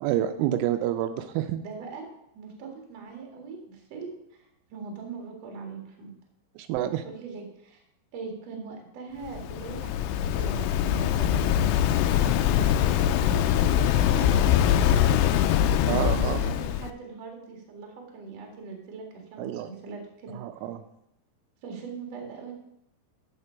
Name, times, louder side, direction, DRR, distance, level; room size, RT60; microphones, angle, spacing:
voice 1, 0.0-1.6 6.6-7.0 15.9-16.4 19.4-19.7 20.3-20.8, right 12 dB, 85° right, 8 dB, 3.1 m, -28 dB
voice 2, 1.6-2.1 2.3-6.1 7.0-7.8 8.1-15.4 15.8-19.0 19.3-20.4 21.6-22.5, right 5 dB, 50° right, 1 dB, 2.1 m, -41 dB
Waves surf, 9.2-16.9, left 10 dB, 85° left, 2.8 m, -23 dB
8.1 x 7.2 x 5.7 m, 0.79 s
omnidirectional pair, 5.6 m